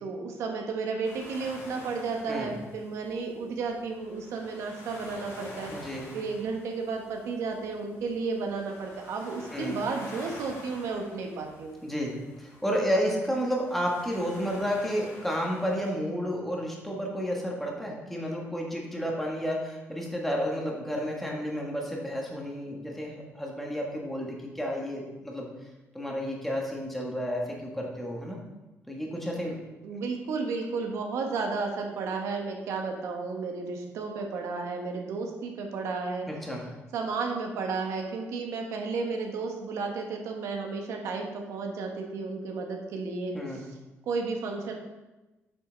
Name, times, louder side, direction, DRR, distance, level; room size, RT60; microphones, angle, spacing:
voice 1, 0.0-5.7 6.1-11.8 29.8-36.3 36.9-43.4 44.1-44.7, right 4 dB, 75° right, 2 dB, 1.3 m, -33 dB
sound 1, 1.0-15.9, left 2 dB, 70° left, 2.1 m, -48 dB
voice 2, 5.7-6.0 9.5-9.7 11.8-12.1 12.4-25.5 25.9-28.4 28.9-29.6 36.3-36.6 43.3-43.6, equal, 5° left, -2 dB, 1.4 m, -31 dB
7.7 x 5.7 x 3.9 m, 1.1 s
cardioid pair, 150°, 5 cm